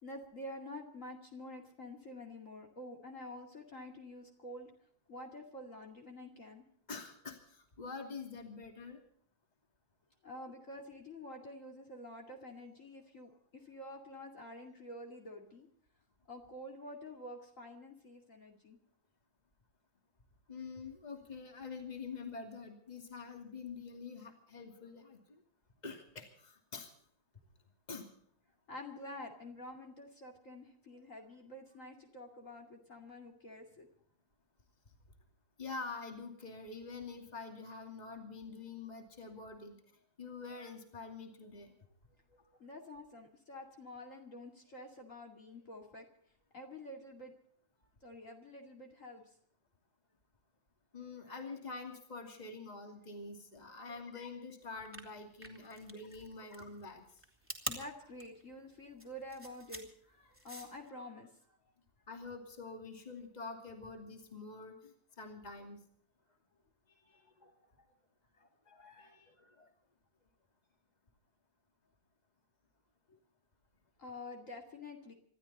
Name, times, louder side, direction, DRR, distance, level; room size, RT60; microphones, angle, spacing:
voice 1, 0.0-4.7 5.1-6.6 10.2-15.7 16.3-18.8 28.7-33.9 42.6-46.1 46.5-47.3 48.0-49.2 57.6-61.3 66.9-67.3 69.0-69.3 73.1-73.2 74.0-75.1, left 1 dB, 45° left, 1 dB, 2.7 m, -48 dB
voice 2, 6.9-9.0 20.5-25.4 25.8-26.9 27.9-28.1 35.6-39.8 40.2-41.7 42.3-42.4 50.9-57.0 62.1-65.8 67.2-67.5 68.4-69.7, left 4 dB, 20° left, 4 dB, 2.7 m, -46 dB
sound 1, 54.7-60.9, right 1 dB, 5° right, 2.7 m, -46 dB
27.0 x 13.0 x 4.2 m, 0.64 s
omnidirectional pair, 2.0 m